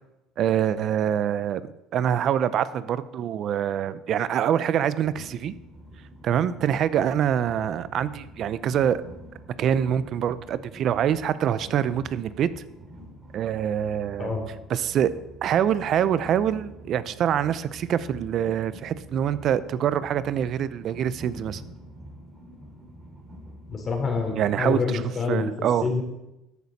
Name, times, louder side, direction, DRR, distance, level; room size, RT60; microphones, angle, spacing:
voice 1, 0.4-5.5 6.2-9.0 9.6-12.5 13.3-14.3 14.7-15.1 15.4-21.6 24.4-25.0 25.3-25.9, right 9 dB, 55° right, 15 dB, 0.6 m, -25 dB
Train, 5.0-24.8, equal, 25° right, 2.7 m, -46 dB
voice 2, 23.7-25.5 25.8-26.0, left 4 dB, 40° left, 3 dB, 3.0 m, -27 dB
14.0 x 6.5 x 4.2 m, 0.94 s
supercardioid pair, 85°, 0 cm